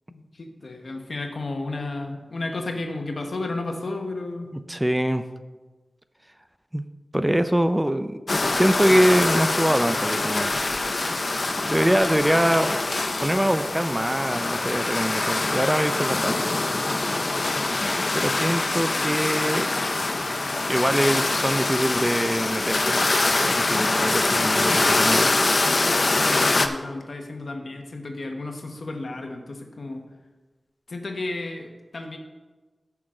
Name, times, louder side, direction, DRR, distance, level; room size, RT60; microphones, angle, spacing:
voice 1, 0.1-4.5 23.5-25.1 25.6-30.0 30.9-32.2, left 2 dB, 70° left, 3 dB, 1.2 m, -33 dB
voice 2, 4.5-5.2 6.7-6.8 7.1-8.2 8.5-10.6 11.6-12.8 13.2-16.5 17.5-19.8 20.7-25.3, equal, 10° right, 10 dB, 0.5 m, -24 dB
sound 1, 8.3-26.7, left 2 dB, 55° left, 0.7 m, -24 dB
14.0 x 6.0 x 3.8 m, 1.3 s
wide cardioid pair, 70°, 0 cm